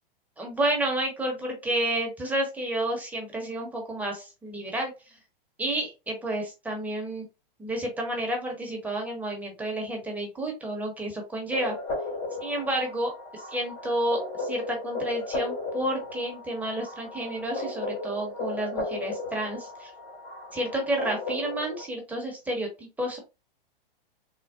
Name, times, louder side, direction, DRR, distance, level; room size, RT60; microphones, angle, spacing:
voice 1, 0.4-5.1 5.6-7.2 7.6-11.7 12.4-19.9 20.5-23.2, right 1 dB, 5° right, 0 dB, 0.8 m, -30 dB
sound 1, 11.5-21.8, left 2 dB, 50° left, 1.4 m, -35 dB
3.6 x 2.1 x 2.3 m, 0.29 s
hypercardioid pair, 115°, 29 cm